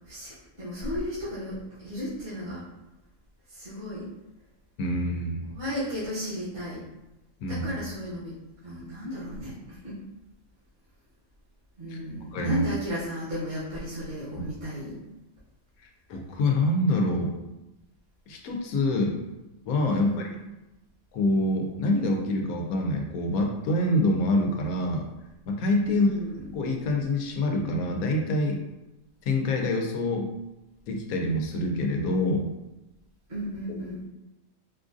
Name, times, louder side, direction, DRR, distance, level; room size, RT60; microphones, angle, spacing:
voice 1, 0.1-2.6 3.5-4.1 5.5-6.8 7.5-8.4 8.6-10.0 11.8-15.0 19.9-20.3 25.8-26.4 33.3-34.0, equal, 40° right, -12 dB, 1.4 m, -34 dB
voice 2, 4.8-5.5 7.4-7.7 11.9-12.0 12.3-12.6 14.4-14.5 16.1-17.3 18.3-19.2 19.7-20.1 21.1-25.1 25.5-26.1 26.5-28.6 29.2-30.3 30.9-32.5, left 1 dB, 90° left, 2 dB, 1.1 m, -26 dB
4.4 x 2.4 x 2.5 m, 0.97 s
omnidirectional pair, 1.5 m